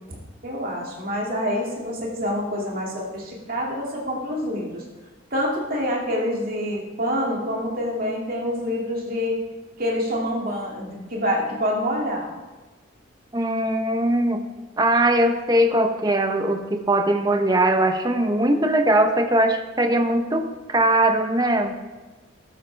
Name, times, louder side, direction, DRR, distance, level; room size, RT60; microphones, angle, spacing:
voice 1, 0.4-4.8 5.3-9.4 9.8-12.3, equal, 45° right, -2 dB, 2.4 m, -26 dB
voice 2, 13.3-14.4 14.8-21.7, right 1 dB, 20° right, 6 dB, 0.8 m, -20 dB
14.0 x 11.5 x 3.4 m, 1.2 s
head